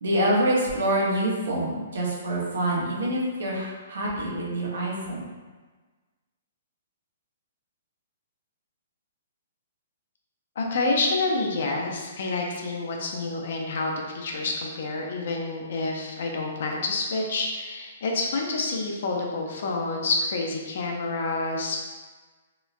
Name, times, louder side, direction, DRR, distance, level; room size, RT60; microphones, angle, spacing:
voice 1, 0.0-5.3, right 1 dB, 75° right, -4 dB, 0.7 m, -26 dB
voice 2, 10.6-21.8, left 3 dB, 55° left, 0 dB, 0.4 m, -28 dB
2.9 x 2.0 x 2.4 m, 1.3 s
hypercardioid pair, 170°, 0 cm